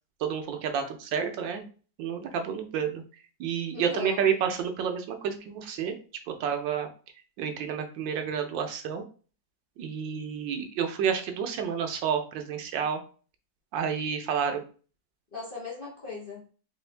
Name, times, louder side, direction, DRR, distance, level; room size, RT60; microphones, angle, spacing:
voice 1, 0.2-1.7 2.0-3.0 3.4-5.9 6.4-6.9 7.4-9.0 9.8-13.0 13.7-14.6, right 7 dB, 85° right, 5 dB, 1.4 m, -30 dB
voice 2, 3.7-4.2 15.3-16.5, left 4 dB, 35° left, -4 dB, 1.0 m, -38 dB
4.4 x 2.5 x 3.3 m, 0.38 s
omnidirectional pair, 2.0 m